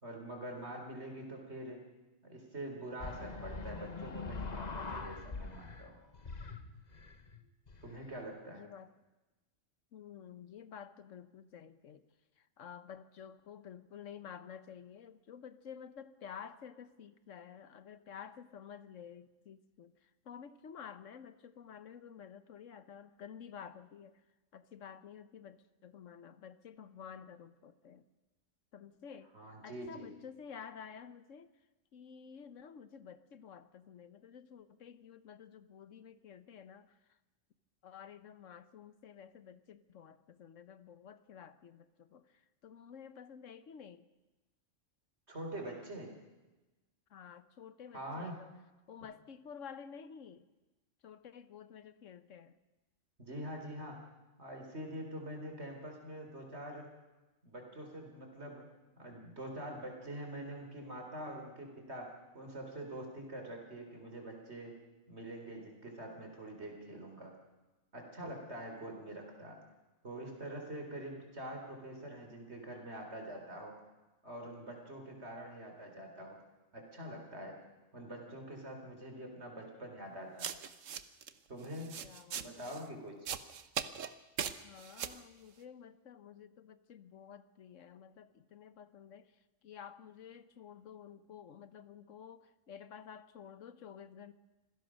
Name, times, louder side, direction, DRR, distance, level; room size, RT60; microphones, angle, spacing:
voice 1, 0.0-1.8 2.2-6.0 7.8-8.7 29.3-30.1 45.3-46.1 47.9-48.4 53.2-54.0 54.4-56.9 57.4-58.7 59.0-64.8 65.1-67.3 67.9-69.6 70.0-73.8 74.2-76.4 76.7-77.6 77.9-80.5 81.5-82.0 82.3-83.3, right 1 dB, 55° right, 2 dB, 4.2 m, -45 dB
sound 1, 3.0-5.9 6.1-8.2, left 4 dB, 35° left, 1.2 m, -43 dB
voice 2, 8.5-8.9 9.9-12.0 12.4-24.2 24.5-28.0 28.7-29.3 29.6-31.5 31.9-37.2 37.8-44.1 47.1-48.5 48.9-50.5 51.0-52.6 82.0-82.9 84.4-94.3, left 7 dB, 75° left, 13 dB, 1.3 m, -51 dB
sound 2, 80.4-81.3 81.6-82.8 83.3-84.1 84.4-85.2, right 8 dB, 75° right, 1.3 m, -39 dB
26.0 x 16.5 x 6.4 m, 1.1 s
omnidirectional pair, 1.3 m